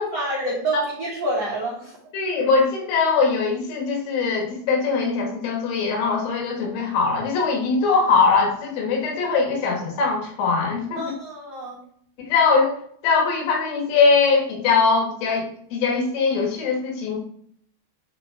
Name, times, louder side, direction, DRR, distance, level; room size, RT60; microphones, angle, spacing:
voice 1, 0.0-1.9 11.0-11.8, right 1 dB, 65° right, -6 dB, 1.6 m, -28 dB
voice 2, 2.1-11.2 12.3-12.7 13.0-17.2, left 4 dB, 75° left, 0 dB, 4.3 m, -21 dB
10.0 x 4.3 x 4.4 m, 0.63 s
omnidirectional pair, 6.0 m